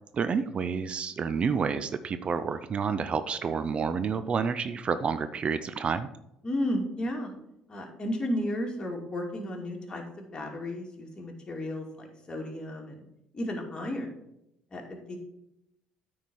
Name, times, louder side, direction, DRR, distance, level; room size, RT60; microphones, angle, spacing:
voice 1, 0.1-6.1, right 6 dB, 40° right, 12 dB, 0.5 m, -29 dB
voice 2, 6.4-7.3 7.7-13.0 13.3-14.1 14.7-15.2, left 1 dB, 30° left, 1 dB, 2.5 m, -33 dB
9.1 x 4.8 x 5.4 m, 0.83 s
hypercardioid pair, 65°, 3 cm